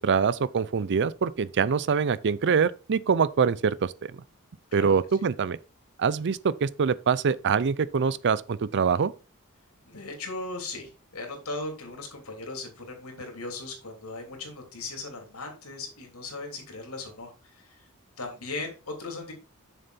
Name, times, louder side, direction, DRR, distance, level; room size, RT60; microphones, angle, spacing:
voice 1, 0.0-4.1 4.7-5.6 6.0-9.1, right 6 dB, 55° right, 0.5 m, -24 dB
voice 2, 9.8-17.8 18.2-19.3, left 3 dB, 70° left, 3.2 m, -38 dB
7.2 x 6.7 x 4.2 m
head